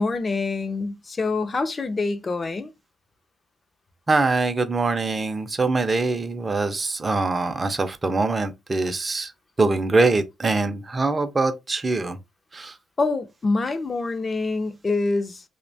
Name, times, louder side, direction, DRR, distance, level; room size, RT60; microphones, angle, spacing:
voice 1, 0.0-2.7 13.0-15.4, left 3 dB, 30° left, 0.5 m, -25 dB
voice 2, 4.1-9.3 9.6-12.2 12.5-12.7, right 3 dB, 25° right, 0.5 m, -23 dB
2.7 x 2.1 x 2.6 m
cardioid pair, 90°, 0 cm